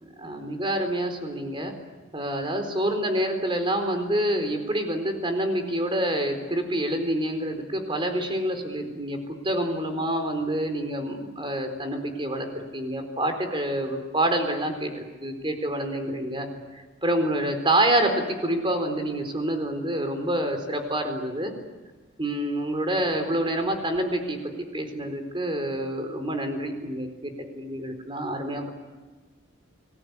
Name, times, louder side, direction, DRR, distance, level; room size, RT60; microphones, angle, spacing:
voice 1, 0.2-1.7 2.1-9.2 9.4-16.5 17.0-21.5 22.2-24.4 24.7-28.7, right 1 dB, 25° right, 6 dB, 4.3 m, -27 dB
30.0 x 21.0 x 8.3 m, 1.3 s
head